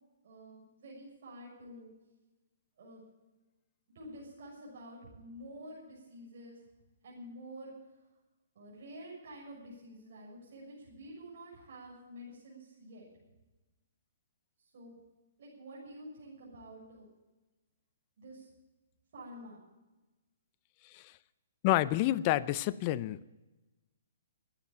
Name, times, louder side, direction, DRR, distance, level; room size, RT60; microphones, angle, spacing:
voice 1, 0.2-1.9 2.8-3.0 3.9-6.6 7.0-7.7 8.5-13.1 14.6-15.0 15.4-17.1 18.2-18.5 19.1-19.6, equal, 60° right, -5 dB, 6.5 m, -49 dB
voice 2, 20.8-21.2 21.6-23.2, left 15 dB, 35° left, 17 dB, 0.5 m, -29 dB
13.0 x 9.4 x 8.9 m, 1.1 s
hypercardioid pair, 145°, 0 cm